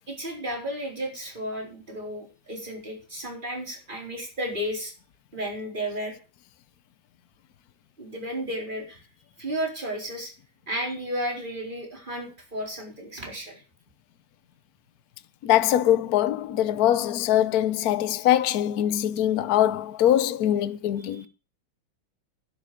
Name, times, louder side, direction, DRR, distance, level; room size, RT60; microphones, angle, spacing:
voice 1, 0.1-4.9 5.3-6.1 8.0-9.0 9.4-10.3 10.7-13.6 21.0-21.3, equal, 25° right, 4.5 m, -33 dB
voice 2, 15.4-21.3, left 12 dB, 60° left, 1.2 m, -22 dB
11.5 x 11.5 x 5.0 m
omnidirectional pair, 2.1 m